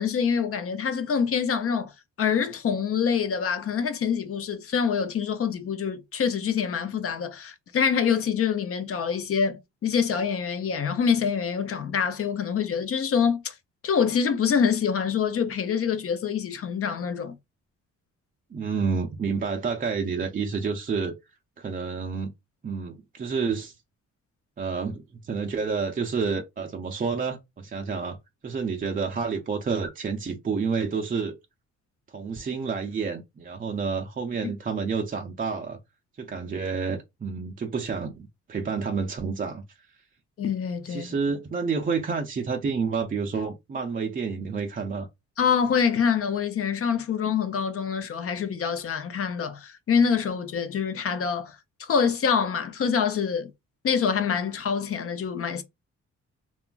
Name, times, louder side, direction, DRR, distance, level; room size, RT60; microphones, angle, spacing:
voice 1, 0.0-1.9 2.2-13.6 13.8-17.3 40.4-41.1 45.4-53.5 53.8-55.6, left 6 dB, 50° left, 0.6 m, -25 dB
voice 2, 18.5-21.1 21.6-22.3 22.6-23.8 24.6-28.2 28.4-31.4 32.1-35.8 36.2-39.6 40.9-45.1, right 5 dB, 30° right, 0.4 m, -29 dB
3.0 x 2.3 x 2.3 m
cardioid pair, 80°, 30 cm